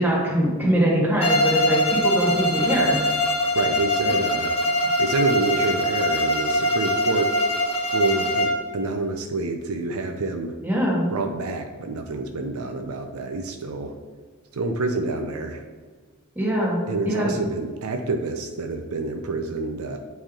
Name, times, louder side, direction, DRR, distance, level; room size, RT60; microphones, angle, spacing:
voice 1, 0.0-3.0 10.6-11.1 16.3-17.3, equal, 10° right, -5 dB, 1.7 m, -22 dB
Bowed string instrument, 1.2-8.7, left 1 dB, 25° left, 1.0 m, -22 dB
voice 2, 3.5-4.5 5.0-7.3 7.9-10.5 11.1-14.0 14.5-15.6 16.9-20.0, right 3 dB, 75° right, 5 dB, 0.6 m, -27 dB
8.8 x 3.4 x 3.7 m, 1.5 s
head